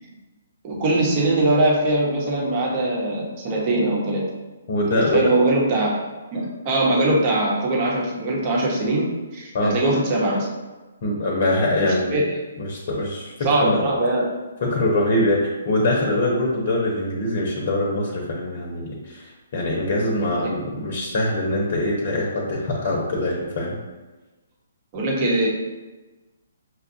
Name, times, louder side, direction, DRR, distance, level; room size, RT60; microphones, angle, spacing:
voice 1, 0.6-4.3 4.9-6.0 6.3-9.0 9.3-10.5 11.8-12.2 13.4-14.3 20.4-20.5 24.9-25.5, right 2 dB, 35° right, -3 dB, 1.0 m, -21 dB
voice 2, 4.7-5.2 9.5-9.8 11.0-12.2 12.6-13.9 14.6-23.8, left 1 dB, 50° left, -1 dB, 0.8 m, -23 dB
6.2 x 2.3 x 2.7 m, 1.2 s
hypercardioid pair, 140°, 0 cm